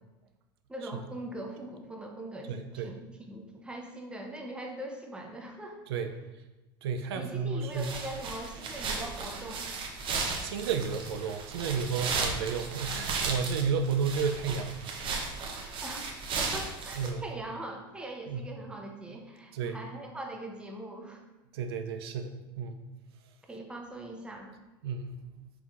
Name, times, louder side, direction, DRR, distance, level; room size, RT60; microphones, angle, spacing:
voice 1, 0.7-5.8 7.1-9.7 15.8-16.0 16.4-21.2 23.5-24.5, right 1 dB, 10° right, 1 dB, 0.6 m, -41 dB
voice 2, 2.5-2.9 5.9-6.1 6.8-7.9 10.4-15.0 17.0-17.2 18.3-18.5 19.5-19.8 21.5-22.8 24.8-25.2, right 6 dB, 90° right, 7 dB, 0.4 m, -32 dB
sound 1, 7.7-17.1, right 4 dB, 40° right, 0.7 m, -35 dB
4.4 x 3.5 x 2.4 m, 1.1 s
supercardioid pair, 105°, 13 cm